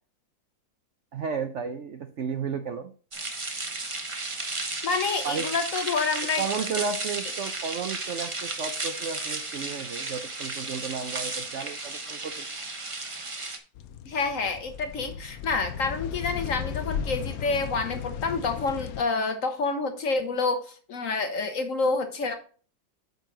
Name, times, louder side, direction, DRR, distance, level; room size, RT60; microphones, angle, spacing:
voice 1, 1.1-2.9 5.2-5.5 6.4-12.5, right 5 dB, 75° right, 8 dB, 0.6 m, -33 dB
sound 1, 3.1-13.6, right 3 dB, 30° right, 0.5 m, -34 dB
voice 2, 4.8-6.4 14.1-22.4, left 4 dB, 55° left, 7 dB, 1.0 m, -28 dB
sound 2, 13.7-19.0, left 8 dB, 75° left, 0.8 m, -35 dB
8.8 x 5.5 x 3.8 m, 0.41 s
omnidirectional pair, 2.0 m